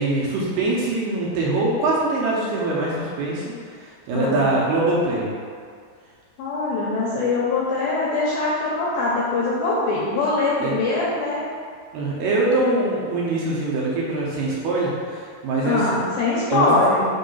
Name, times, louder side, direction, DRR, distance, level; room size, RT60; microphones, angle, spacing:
voice 1, 0.0-3.5 3.8-5.3 10.6-10.8 11.9-16.0 16.5-16.7, right 2 dB, 75° right, -5 dB, 2.6 m, -23 dB
voice 2, 6.4-11.4 15.6-17.1, left 3 dB, 80° left, -5 dB, 2.2 m, -22 dB
6.3 x 3.3 x 5.4 m, 2.1 s
omnidirectional pair, 5.0 m